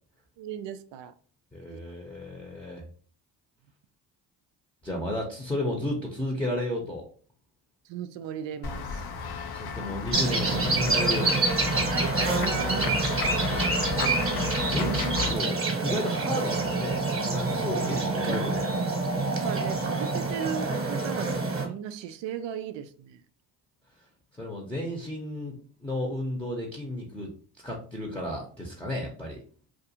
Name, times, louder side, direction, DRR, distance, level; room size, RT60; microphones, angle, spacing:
voice 1, 0.4-1.1 1.7-1.8 7.9-9.1 11.9-13.0 19.3-23.2, right 9 dB, 65° right, 0.5 m, -36 dB
voice 2, 1.5-2.8 4.8-7.0 9.5-11.4 12.8-12.9 13.6-17.0 17.2-18.7 24.4-27.3 27.6-29.4, left 1 dB, 5° left, 0.7 m, -33 dB
Run / Walk footsteps / Bell, 8.6-15.3, left 7 dB, 55° left, 0.5 m, -33 dB
sound 1, 10.1-21.7, right 3 dB, 30° right, 1.1 m, -27 dB
2.5 x 2.4 x 2.7 m
supercardioid pair, 65°, 47 cm